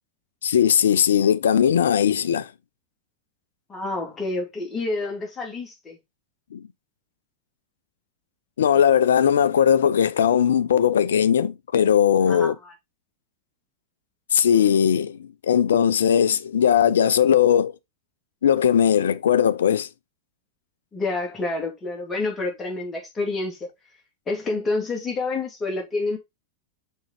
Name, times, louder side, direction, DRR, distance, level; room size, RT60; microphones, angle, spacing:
voice 1, 0.4-2.5 6.5-6.6 8.6-12.5 14.3-17.7 18.4-19.9, left 8 dB, 65° left, 0.5 m, -19 dB
voice 2, 3.7-6.0 12.2-12.7 20.9-23.7 24.3-26.2, left 3 dB, 20° left, 2.7 m, -28 dB
6.2 x 4.6 x 4.1 m
figure-of-eight pair, 90°, 0 cm